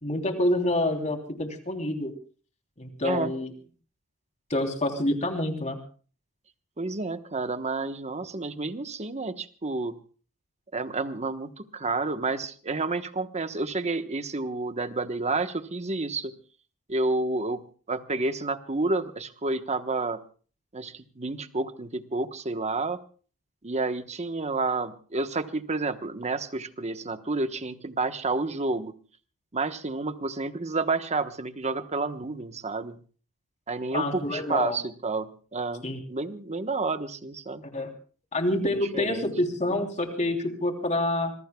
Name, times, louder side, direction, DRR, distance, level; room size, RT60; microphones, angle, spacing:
voice 1, 0.0-2.1 2.8-3.5 4.5-5.8 33.9-34.8 35.8-36.0 37.7-37.9 38.3-41.3, left 1 dB, 35° left, 4 dB, 3.3 m, -27 dB
voice 2, 6.8-10.0 10.7-16.3 16.9-20.2 20.7-23.0 23.6-28.9 29.5-33.0 33.7-37.6 38.9-39.3, right 3 dB, 30° right, 10 dB, 1.1 m, -30 dB
26.0 x 21.5 x 2.3 m, 0.40 s
head